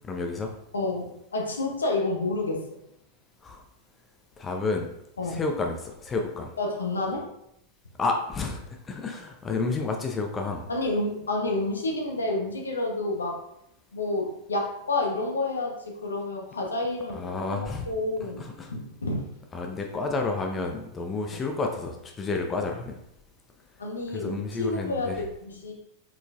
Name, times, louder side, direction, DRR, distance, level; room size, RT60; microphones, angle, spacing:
voice 1, 0.0-0.5 3.4-3.6 4.4-4.9 5.2-6.5 8.0-8.6 8.9-10.6 17.1-17.9 18.2-18.7 19.5-23.0 24.1-25.2, left 3 dB, 20° left, 3 dB, 0.5 m, -30 dB
voice 2, 0.7-2.6 5.2-5.4 6.6-7.2 10.7-13.4 13.9-18.4 18.7-19.2 21.3-21.4 23.8-25.7, left 2 dB, 75° left, 1 dB, 0.8 m, -29 dB
4.7 x 3.9 x 2.4 m, 0.79 s
figure-of-eight pair, 90°, 0 cm